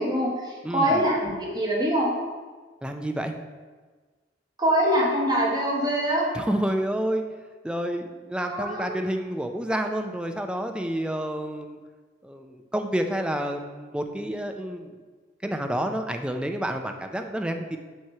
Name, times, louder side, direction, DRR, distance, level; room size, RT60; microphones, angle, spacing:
voice 1, 0.0-2.1 4.6-6.3 8.4-8.9, equal, 20° right, -4 dB, 1.5 m, -24 dB
voice 2, 0.6-1.0 2.8-3.3 6.3-7.2 7.6-11.8 12.2-14.9 15.4-17.8, right 1 dB, 5° right, 5 dB, 0.4 m, -29 dB
7.4 x 3.1 x 5.6 m, 1.4 s
head